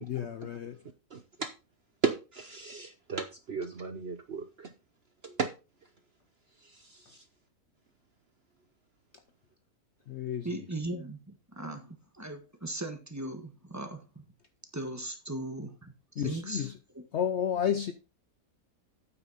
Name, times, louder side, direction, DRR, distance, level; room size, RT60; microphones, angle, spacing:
voice 1, 0.0-0.8 10.1-10.5 16.2-16.7 17.1-17.9, left 9 dB, 60° left, 0.7 m, -31 dB
voice 2, 1.1-1.5 2.0-4.7 5.2-5.5 6.6-7.2, right 5 dB, 50° right, 0.9 m, -35 dB
voice 3, 10.4-14.2 14.7-16.7 16.9-17.0, right 2 dB, 10° right, 1.3 m, -38 dB
9.0 x 8.3 x 4.0 m
omnidirectional pair, 1.6 m